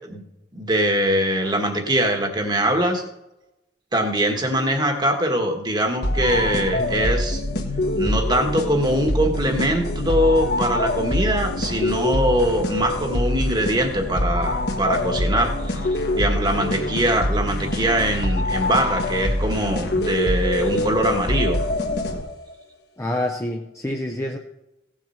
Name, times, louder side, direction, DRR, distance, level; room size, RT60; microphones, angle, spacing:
voice 1, 0.5-3.0 3.9-7.4 8.0-21.6, right 1 dB, 25° right, 4 dB, 1.5 m, -22 dB
sound 1, 6.0-22.5, left 1 dB, 60° left, 1.7 m, -24 dB
voice 2, 23.0-24.4, left 1 dB, 15° left, 1 dB, 0.7 m, -27 dB
16.5 x 7.5 x 5.7 m, 0.93 s
head